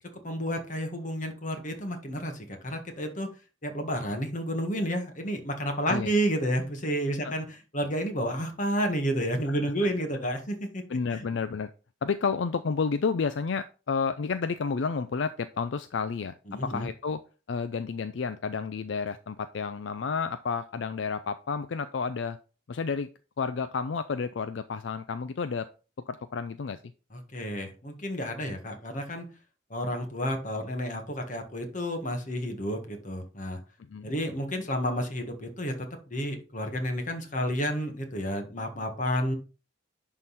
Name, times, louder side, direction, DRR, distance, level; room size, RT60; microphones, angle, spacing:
voice 1, 0.2-3.3 3.6-10.8 11.1-11.2 16.5-16.9 27.1-29.2 29.7-33.6 34.0-39.3, equal, 45° left, 5 dB, 1.7 m, -31 dB
voice 2, 10.9-11.7 12.0-16.4 16.6-17.2 17.5-22.4 22.7-23.1 23.4-25.7 26.1-26.8 33.9-34.1, left 5 dB, 75° left, 11 dB, 0.4 m, -31 dB
11.0 x 3.8 x 4.1 m, 0.34 s
head